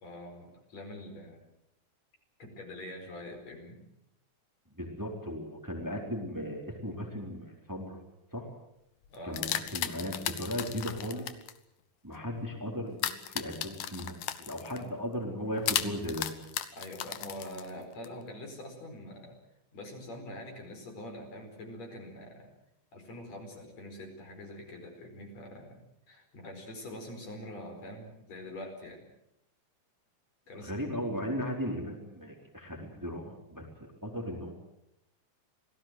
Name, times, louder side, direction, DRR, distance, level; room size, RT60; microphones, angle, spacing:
voice 1, 0.0-1.4 2.4-3.8 9.1-9.5 14.7-14.9 16.8-19.3 19.7-22.5 22.9-25.8 26.1-29.0 30.5-30.8, left 1 dB, 60° left, 3 dB, 6.0 m, -44 dB
voice 2, 4.7-8.0 8.3-8.5 9.3-11.3 12.0-16.3 30.5-34.5, equal, 5° right, 1 dB, 3.8 m, -37 dB
sound 1, 9.1-11.5 13.0-14.8 15.7-18.1, left 11 dB, 80° left, 2.7 m, -35 dB
27.5 x 18.0 x 7.7 m, 0.81 s
omnidirectional pair, 3.5 m